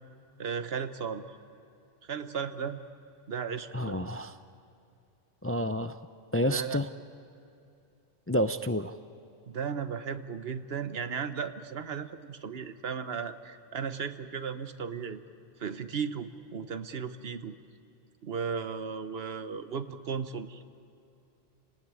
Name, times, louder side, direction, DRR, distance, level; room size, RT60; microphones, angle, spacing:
voice 1, 0.4-1.2 2.0-2.8 3.3-4.0 6.4-6.8 9.5-15.2 15.6-17.6 18.2-20.6, right 6 dB, 75° right, 10 dB, 1.2 m, -35 dB
voice 2, 3.7-4.3 5.4-6.0 6.3-6.9 8.3-8.9, equal, 20° left, 10 dB, 0.4 m, -29 dB
30.0 x 18.5 x 9.7 m, 2.7 s
omnidirectional pair, 1.0 m